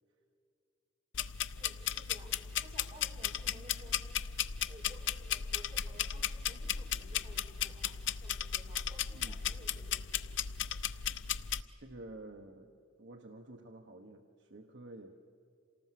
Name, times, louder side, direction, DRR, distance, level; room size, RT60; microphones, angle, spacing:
sound 1, 1.1-11.6, left 9 dB, 65° left, 0.6 m, -36 dB
voice 1, 1.6-2.3 2.6-4.0 4.6-10.0, right 1 dB, 30° right, -1 dB, 5.0 m, -56 dB
voice 2, 11.8-15.1, right 2 dB, 60° right, 4 dB, 1.2 m, -50 dB
27.5 x 19.0 x 7.6 m, 2.5 s
head